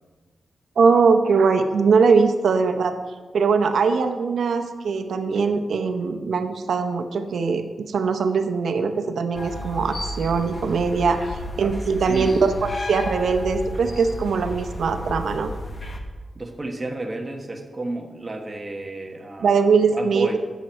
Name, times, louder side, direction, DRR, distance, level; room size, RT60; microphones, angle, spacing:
voice 1, 0.8-2.9 3.3-12.5 12.9-15.5 19.4-20.4, right 5 dB, 85° right, 8 dB, 0.8 m, -21 dB
sound 1, 9.3-16.0, left 1 dB, 30° left, 1.0 m, -33 dB
voice 2, 12.0-12.4 16.3-20.4, right 2 dB, 25° right, 4 dB, 1.1 m, -32 dB
11.5 x 7.4 x 4.4 m, 1.4 s
wide cardioid pair, 120°, 0 cm